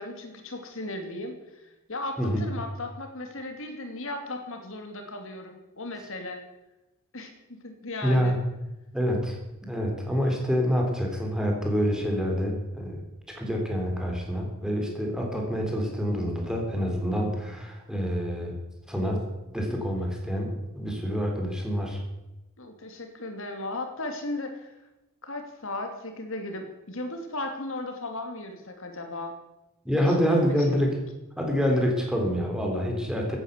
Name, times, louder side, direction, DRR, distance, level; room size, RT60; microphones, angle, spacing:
voice 1, 0.0-6.4 7.1-7.3 7.6-8.4 22.6-24.7 25.2-29.4 30.0-30.9, left 2 dB, 65° left, 5 dB, 2.7 m, -36 dB
voice 2, 8.0-8.4 8.9-9.4 9.7-13.0 13.4-18.6 18.9-19.2 19.5-22.0 29.9-31.0 31.4-33.4, equal, 5° right, 0 dB, 3.6 m, -27 dB
16.0 x 9.7 x 8.2 m, 0.98 s
head